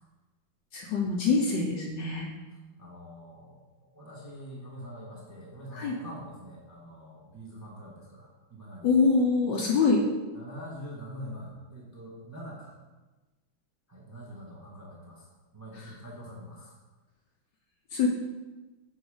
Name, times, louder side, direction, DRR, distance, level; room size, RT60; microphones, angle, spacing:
voice 1, 0.7-2.3 5.7-5.9 8.8-10.0 15.8-15.9 17.9-18.1, left 4 dB, 65° left, 0 dB, 1.2 m, -25 dB
voice 2, 2.8-3.5 3.9-8.9 10.3-12.7 13.9-16.8, equal, 10° right, -4 dB, 0.9 m, -44 dB
6.2 x 4.5 x 4.9 m, 1.2 s
omnidirectional pair, 2.3 m